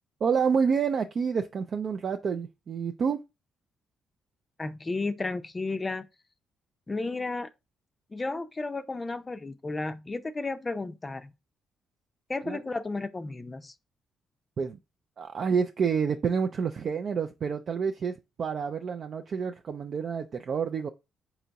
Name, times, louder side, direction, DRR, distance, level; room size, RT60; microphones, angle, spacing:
voice 1, 0.2-3.2 12.5-12.6 14.6-14.8 15.2-20.9, right 6 dB, 50° right, 0.4 m, -28 dB
voice 2, 4.6-6.1 6.9-7.5 8.1-11.3 12.3-13.7, left 3 dB, 25° left, 0.5 m, -33 dB
4.0 x 2.9 x 4.5 m
cardioid pair, 90°, 0 cm